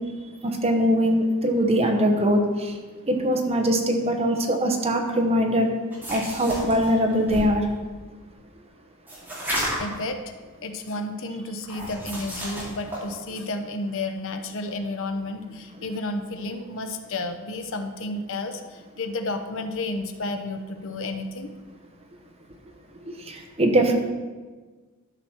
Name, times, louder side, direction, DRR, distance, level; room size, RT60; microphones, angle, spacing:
voice 1, 0.4-2.8 3.1-5.7 6.1-7.7 23.3-23.9, equal, 30° right, 2 dB, 1.1 m, -22 dB
sound 1, 5.9-7.6 9.1-10.0 11.6-13.0, equal, 10° right, 2.9 m, -32 dB
voice 2, 9.8-10.2 10.6-21.5, left 2 dB, 65° left, 6 dB, 0.7 m, -31 dB
12.0 x 6.0 x 4.4 m, 1.4 s
head